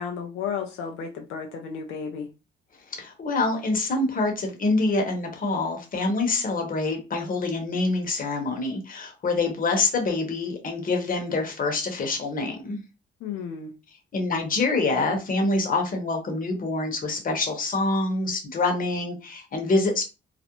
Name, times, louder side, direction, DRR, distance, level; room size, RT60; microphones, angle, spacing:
voice 1, 0.0-2.3 13.2-13.7, left 6 dB, 90° left, 0.5 m, -33 dB
voice 2, 2.9-12.8 14.1-20.0, left 3 dB, 45° left, 0.9 m, -26 dB
2.4 x 2.0 x 2.9 m
cardioid pair, 90°, 20 cm